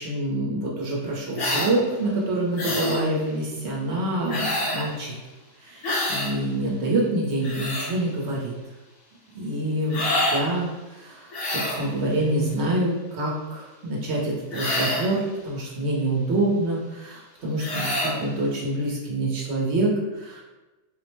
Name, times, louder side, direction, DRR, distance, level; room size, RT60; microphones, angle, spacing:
voice 1, 0.0-5.1 5.6-8.5 9.3-20.4, right 1 dB, 55° right, -3 dB, 0.9 m, -26 dB
sound 1, 1.3-1.7 2.6-3.0 4.3-4.9 5.8-6.3 7.2-7.9 9.9-10.4 11.3-11.9 14.5-15.1 17.6-18.2, left 1 dB, 75° left, 1.5 m, -26 dB
4.0 x 2.1 x 3.1 m, 1.1 s
omnidirectional pair, 1.6 m